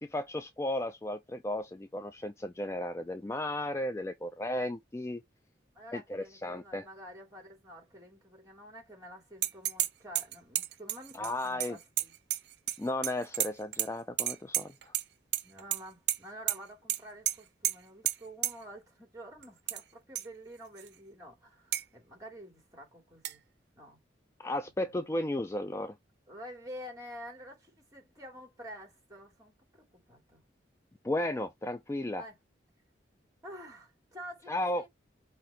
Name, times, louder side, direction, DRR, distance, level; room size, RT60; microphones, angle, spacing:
voice 1, 0.0-5.2 5.9-6.9 11.1-11.8 12.8-14.9 24.4-25.9 31.0-32.2 34.5-34.8, left 1 dB, 15° left, 0.3 m, -34 dB
voice 2, 5.7-12.1 15.4-23.4 23.7-24.0 24.9-25.0 26.3-30.4 32.2-32.4 33.4-34.9, equal, 20° right, 2.5 m, -49 dB
sound 1, 9.4-9.9 10.2-12.8 13.0-13.9 14.2-15.0 15.3-15.8 16.1-16.2 16.5-16.6 16.9-17.0 17.3-17.4 17.6-17.7 18.1-18.2 18.4-18.5 19.4-19.8 20.2-20.3 20.8-20.9 21.7-21.8 23.2-23.3, right 13 dB, 65° right, 0.6 m, -30 dB
5.7 x 2.7 x 3.3 m
head